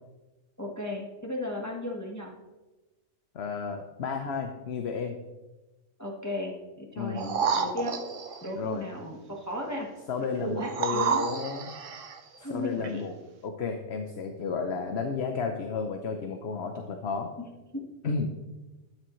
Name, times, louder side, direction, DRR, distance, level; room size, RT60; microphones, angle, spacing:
voice 1, 0.6-2.3 6.0-8.0 8.4-9.9 10.4-11.3 12.4-13.0 17.7-17.9, left 1 dB, 15° left, -1 dB, 1.3 m, -35 dB
voice 2, 3.3-5.2 7.0-7.3 8.6-8.9 10.1-11.7 12.5-13.1 13.4-17.3 18.0-18.3, left 5 dB, 60° left, 5 dB, 1.0 m, -32 dB
sound 1, 7.2-8.5 10.6-12.2 12.8-12.9, right 6 dB, 75° right, 1.3 m, -30 dB
12.5 x 9.6 x 3.1 m, 1.1 s
omnidirectional pair, 1.3 m